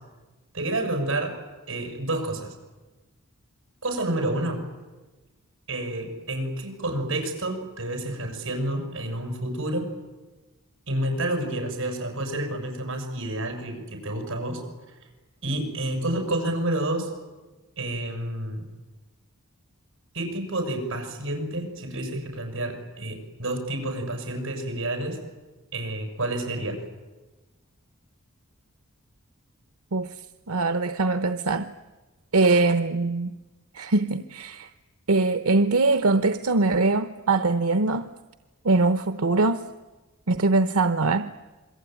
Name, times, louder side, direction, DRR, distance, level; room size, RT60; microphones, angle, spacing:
voice 1, 0.5-1.4 1.7-2.5 3.8-4.6 5.7-9.9 10.9-14.6 14.9-15.0 15.4-17.1 17.8-18.6 20.1-25.2 25.7-26.8, right 1 dB, 60° right, 6.8 m, -29 dB
voice 2, 29.9-31.7 32.3-33.3 33.7-34.7 35.1-38.1 38.6-39.6 40.3-41.3, right 3 dB, 90° right, 0.9 m, -22 dB
27.5 x 22.5 x 9.2 m
head